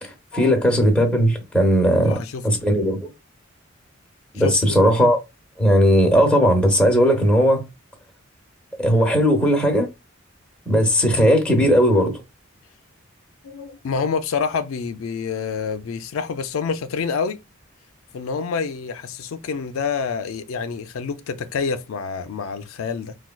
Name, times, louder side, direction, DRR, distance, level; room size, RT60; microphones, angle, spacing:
voice 1, 0.0-3.1 4.3-5.2 5.6-7.7 8.8-9.9 10.7-12.2, equal, 5° left, 0.9 m, -17 dB
voice 2, 2.0-2.4 4.4-4.8 13.4-17.4 18.1-23.2, left 5 dB, 85° left, 0.4 m, -27 dB
4.4 x 2.2 x 2.2 m
head